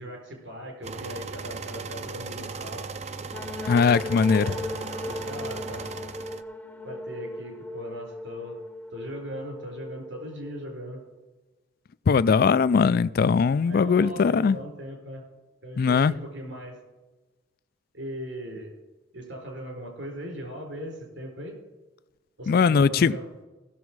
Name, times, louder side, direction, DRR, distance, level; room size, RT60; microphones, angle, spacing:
voice 1, 0.0-2.9 4.3-4.6 5.0-5.9 6.8-8.6 8.9-11.0 13.6-15.2 15.6-16.8 17.9-18.7 19.1-21.6 22.4-23.3, equal, 80° right, 4.7 m, -38 dB
sound 1, 0.8-6.4, right 4 dB, 35° right, 0.5 m, -37 dB
sound 2, 3.3-11.0, left 2 dB, 10° left, 0.7 m, -38 dB
voice 2, 3.7-4.5 12.1-14.6 15.8-16.1 22.5-23.1, left 5 dB, 50° left, 0.3 m, -20 dB
16.5 x 7.2 x 4.7 m
head